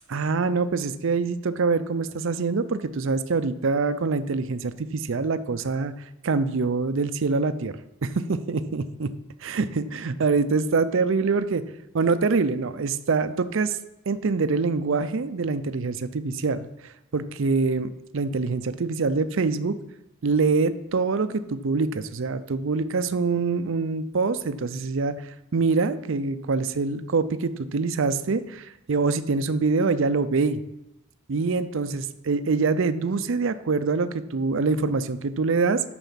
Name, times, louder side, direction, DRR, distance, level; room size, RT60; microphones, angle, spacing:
voice 1, 0.1-5.9 6.2-9.1 9.4-11.6 11.9-13.8 14.1-19.8 20.2-30.6 31.3-35.8, right 4 dB, 55° right, 12 dB, 0.5 m, -25 dB
9.0 x 6.2 x 5.7 m, 0.88 s
head